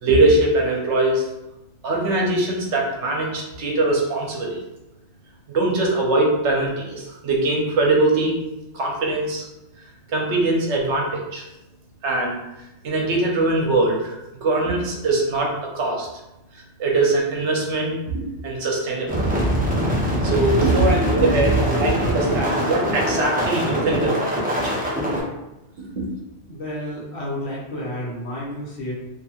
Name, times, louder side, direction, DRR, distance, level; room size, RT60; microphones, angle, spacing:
voice 1, 0.0-1.3 1.8-4.6 5.5-8.4 8.7-9.5 10.1-11.4 12.0-12.4 12.8-16.1 16.8-19.2 20.2-24.9 25.9-26.0, right 2 dB, 75° right, -1 dB, 0.9 m, -22 dB
sound 1, 19.1-25.2, equal, 10° right, 0.4 m, -22 dB
voice 2, 26.5-28.9, left 1 dB, 65° left, -5 dB, 1.1 m, -31 dB
2.8 x 2.7 x 2.3 m, 0.95 s
omnidirectional pair, 1.2 m